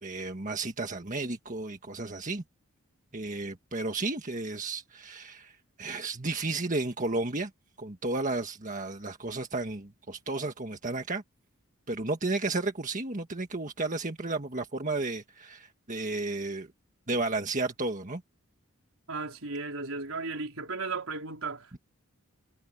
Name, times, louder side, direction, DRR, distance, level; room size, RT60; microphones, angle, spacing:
voice 1, 0.0-2.4 3.1-7.5 7.8-11.2 11.9-16.7 17.1-18.2, right 2 dB, 35° right, 1.6 m, -33 dB
voice 2, 19.1-21.8, right 3 dB, 70° right, 4.2 m, -35 dB
head